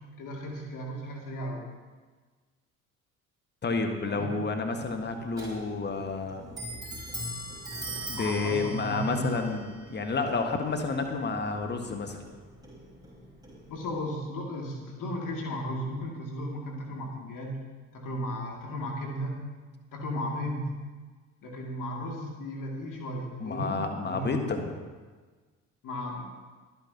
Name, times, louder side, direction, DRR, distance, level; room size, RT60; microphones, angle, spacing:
voice 1, 0.2-1.7 4.0-4.4 8.1-9.5 13.7-17.6 17.9-19.4 19.9-20.7 21.4-24.4 25.8-26.3, equal, 50° left, 0 dB, 2.6 m, -35 dB
voice 2, 3.6-6.5 8.0-12.2 23.4-24.7, left 3 dB, 25° left, 5 dB, 1.6 m, -30 dB
Clock, 4.8-14.0, right 1 dB, 10° right, 4.9 m, -42 dB
23.5 x 9.8 x 2.9 m, 1.4 s
figure-of-eight pair, 50°, 41 cm